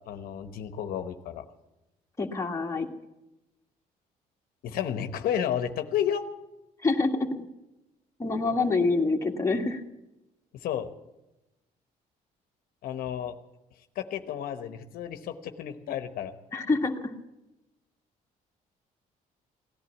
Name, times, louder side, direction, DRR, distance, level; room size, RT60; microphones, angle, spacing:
voice 1, 0.1-1.4 4.6-6.2 10.5-10.9 12.8-13.4 13.9-16.4, left 9 dB, 75° left, 8 dB, 1.0 m, -31 dB
voice 2, 2.2-2.9 6.8-7.5 8.2-9.8 16.5-17.1, left 3 dB, 20° left, 1 dB, 1.7 m, -26 dB
17.5 x 11.0 x 7.2 m, 0.96 s
cardioid pair, 100°, 15 cm